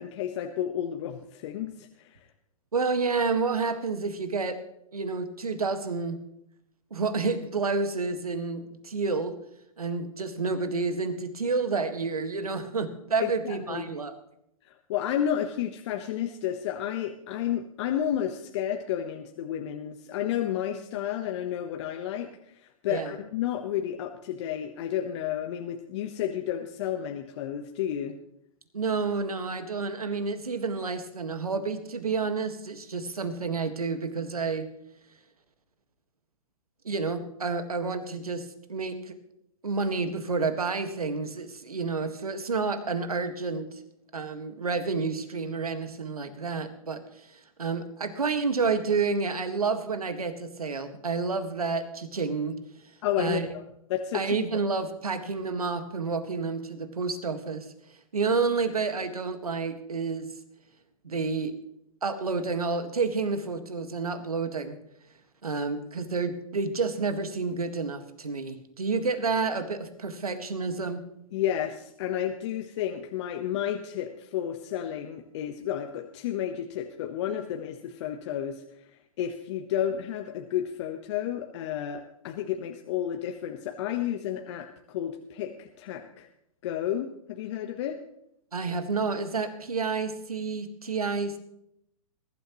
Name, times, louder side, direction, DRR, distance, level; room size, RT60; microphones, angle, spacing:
voice 1, 0.0-2.3 13.2-13.9 14.6-28.2 53.0-53.6 53.9-54.3 71.3-86.3 86.6-88.0, left 10 dB, 50° left, 5 dB, 1.2 m, -31 dB
voice 2, 2.7-4.6 4.9-6.2 6.9-9.4 9.8-14.1 22.9-23.1 28.7-34.6 36.8-39.2 39.6-43.8 44.1-52.5 53.2-53.5 54.1-57.7 58.1-60.3 61.0-61.5 62.0-64.8 65.4-71.0 88.5-91.4, right 4 dB, 90° right, 8 dB, 1.7 m, -29 dB
21.5 x 12.0 x 3.1 m, 0.76 s
hypercardioid pair, 120°, 18 cm